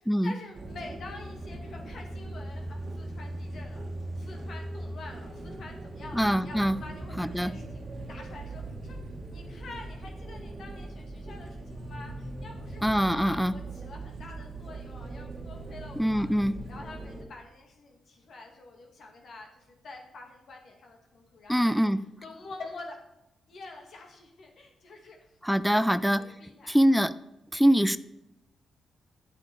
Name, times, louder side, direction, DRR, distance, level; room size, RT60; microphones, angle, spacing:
voice 1, 0.2-3.8 4.2-9.0 9.3-16.2 16.7-21.8 22.2-23.0 23.5-25.2 25.7-26.8, left 3 dB, 65° left, 1 dB, 2.2 m, -47 dB
sound 1, 0.5-17.2, right 2 dB, 45° right, 1.6 m, -40 dB
voice 2, 6.1-6.8 7.2-7.5 12.8-13.5 16.0-16.5 21.5-22.0 25.4-26.2 26.7-27.1 27.5-28.0, equal, ahead, 15 dB, 0.4 m, -23 dB
8.7 x 8.2 x 4.7 m, 0.87 s
cardioid pair, 70°, 0 cm